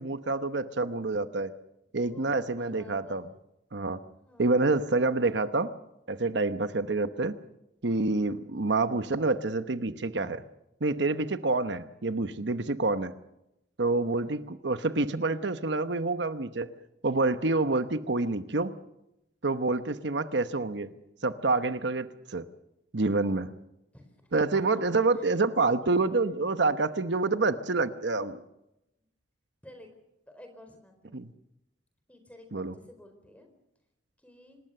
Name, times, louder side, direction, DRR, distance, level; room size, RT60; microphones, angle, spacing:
voice 1, 0.0-1.5 1.9-3.2 3.7-4.0 4.4-5.7 6.1-7.3 7.8-10.4 10.8-13.1 13.8-16.7 17.0-18.7 19.4-20.9 21.2-22.4 22.9-23.5 24.3-28.4 31.1-31.3 32.5-32.7, right 3 dB, 70° right, 11 dB, 1.0 m, -27 dB
voice 2, 2.0-3.2 4.2-4.5 14.7-14.9 23.9-24.8 25.2-25.4 25.8-26.3 29.6-29.9 30.3-31.2 32.1-33.5 34.2-34.6, left 1 dB, 5° left, 5 dB, 4.4 m, -52 dB
26.0 x 20.0 x 6.8 m, 0.87 s
head